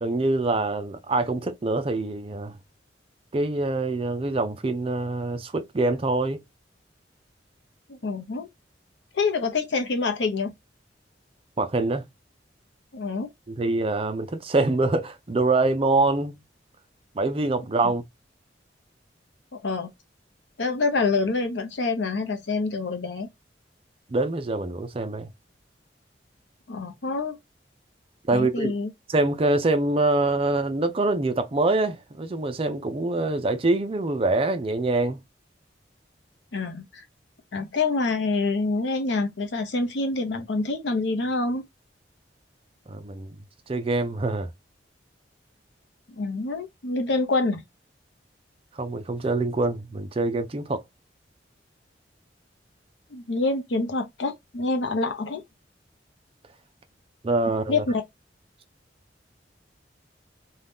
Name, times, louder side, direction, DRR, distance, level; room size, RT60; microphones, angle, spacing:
voice 1, 0.0-2.6 3.3-6.4 11.6-12.1 13.5-16.4 17.1-18.0 24.1-25.3 28.3-28.7 29.1-35.2 42.9-43.4 43.7-44.5 48.8-50.8 57.2-57.8, right 2 dB, 30° right, 0.5 m, -25 dB
voice 2, 7.9-8.5 9.1-10.5 12.9-13.3 19.6-19.9 20.6-23.3 26.7-27.4 28.3-28.9 36.5-37.0 37.5-41.6 46.1-47.6 53.1-55.4 57.7-58.0, left 3 dB, 75° left, 0.7 m, -26 dB
2.7 x 2.3 x 3.4 m
head